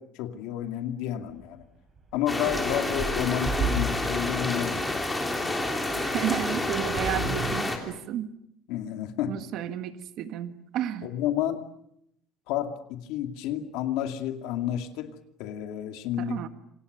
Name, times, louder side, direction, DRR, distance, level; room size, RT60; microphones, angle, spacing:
voice 1, 0.0-1.6 2.1-5.1 8.7-9.4 11.0-11.7 12.5-16.5, left 11 dB, 80° left, 6 dB, 2.4 m, -31 dB
sound 1, 1.3-1.4 2.0-7.6, right 2 dB, 25° right, 4.7 m, -34 dB
sound 2, 2.3-7.8, left 2 dB, 5° left, 3.3 m, -29 dB
voice 2, 6.0-8.3 9.2-11.1 16.2-16.5, right 11 dB, 55° right, 9 dB, 1.6 m, -32 dB
27.5 x 27.0 x 6.8 m, 0.76 s
cardioid pair, 175°, 0 cm